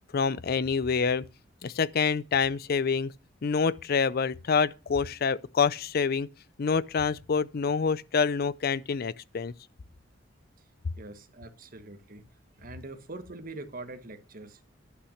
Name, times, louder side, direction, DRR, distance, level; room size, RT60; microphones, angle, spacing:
voice 1, 0.1-1.2 1.6-3.1 3.4-6.3 6.6-9.5, left 5 dB, 50° left, 0.5 m, -27 dB
voice 2, 11.0-12.3 12.6-14.6, right 2 dB, 45° right, 1.4 m, -43 dB
11.5 x 6.0 x 6.4 m
head